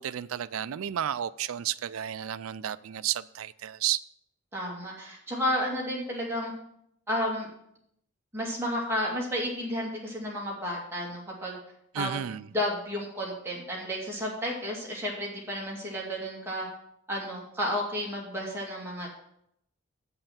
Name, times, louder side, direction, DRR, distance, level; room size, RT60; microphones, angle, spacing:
voice 1, 0.0-4.0 11.9-12.5, right 10 dB, 75° right, 0.4 m, -32 dB
voice 2, 4.5-6.5 7.1-7.5 8.3-11.6 11.9-12.2 12.5-16.7 17.1-19.1, equal, 10° right, 2.4 m, -32 dB
8.0 x 5.6 x 7.2 m
head